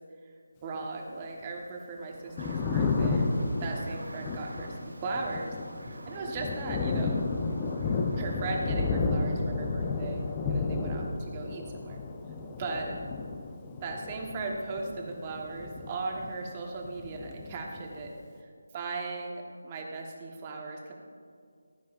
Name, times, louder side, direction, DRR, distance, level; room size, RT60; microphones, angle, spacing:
voice 1, 0.6-3.3 3.6-5.5 6.1-7.2 8.2-12.0 12.6-13.0 13.8-18.1 18.7-20.9, right 3 dB, 25° right, 0 dB, 1.2 m, -37 dB
Thunder, 2.1-16.6 16.8-18.1, left 4 dB, 15° left, 0.6 m, -32 dB
sound 1, 2.4-11.4, right 2 dB, 75° right, 0.6 m, -44 dB
15.0 x 9.0 x 2.5 m, 2.2 s
figure-of-eight pair, 160°, 0 cm